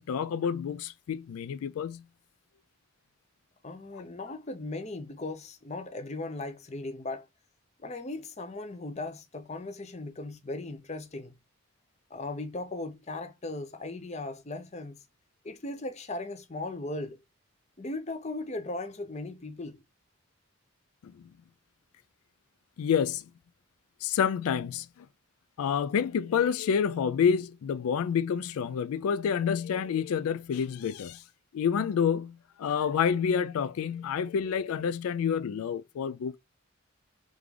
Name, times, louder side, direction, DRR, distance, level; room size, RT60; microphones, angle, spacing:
voice 1, 0.0-2.0 3.9-4.0 21.0-21.2 22.8-23.3 24.0-25.1 25.6-31.2 31.5-36.4, left 7 dB, 90° left, 0.3 m, -28 dB
voice 2, 3.6-7.3 7.8-11.3 12.1-15.0 15.4-17.2 17.8-19.8, left 2 dB, 30° left, 0.6 m, -37 dB
3.8 x 3.5 x 3.1 m
head